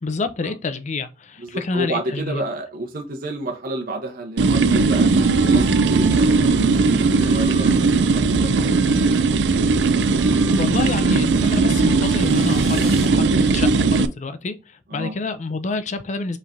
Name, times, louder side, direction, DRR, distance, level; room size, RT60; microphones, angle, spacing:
voice 1, 0.0-2.4 10.6-16.4, left 3 dB, 40° left, 0.5 m, -28 dB
voice 2, 1.4-9.2 14.9-15.1, right 1 dB, 55° right, 0.9 m, -31 dB
sound 1, 4.4-14.1, right 4 dB, 85° right, 0.4 m, -18 dB
Wind instrument woodwind instrument, 5.1-13.4, left 2 dB, 90° left, 0.9 m, -37 dB
sound 2, 10.1-13.1, equal, ahead, 2.1 m, -41 dB
5.6 x 3.2 x 2.6 m
head